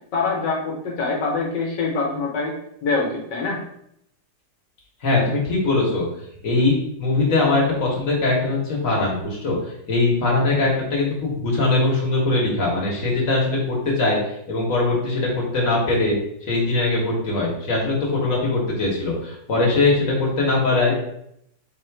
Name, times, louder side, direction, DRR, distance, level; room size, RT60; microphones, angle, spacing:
voice 1, 0.1-2.5 2.8-3.6, left 4 dB, 70° left, -1 dB, 1.6 m, -24 dB
voice 2, 5.0-6.0 6.4-9.5 9.9-14.2 14.5-16.1 16.4-20.9, left 2 dB, 50° left, -3 dB, 1.5 m, -21 dB
4.1 x 2.4 x 4.5 m, 0.75 s
omnidirectional pair, 2.0 m